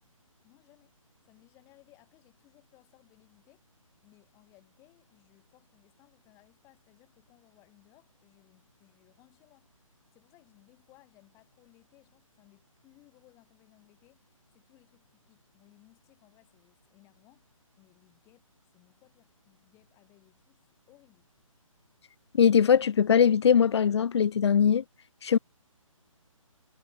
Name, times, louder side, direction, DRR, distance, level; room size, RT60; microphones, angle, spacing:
voice 1, 0.4-1.0 1.2-3.6 4.0-18.4 18.7-20.6 20.9-21.3, left 20 dB, 15° left, 6.2 m, -62 dB
voice 2, 22.3-24.8 25.2-25.4, left 7 dB, 50° left, 0.5 m, -21 dB
hypercardioid pair, 160°, 18 cm